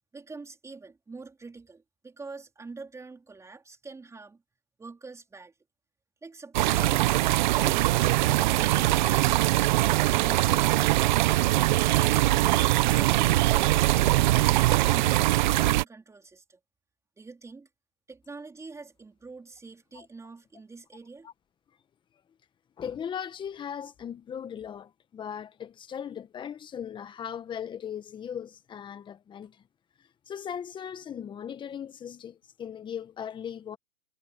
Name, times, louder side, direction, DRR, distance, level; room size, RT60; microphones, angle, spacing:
voice 1, 0.1-4.4 4.8-5.5 6.2-7.1 12.8-16.6 17.2-17.7 18.1-21.3, right 3 dB, 5° right, 4.2 m, -44 dB
sound 1, 6.5-15.8, right 17 dB, 30° right, 1.0 m, -22 dB
voice 2, 22.8-29.6 30.3-33.8, left 8 dB, 10° left, 1.5 m, -38 dB
hypercardioid pair, 145°, 44 cm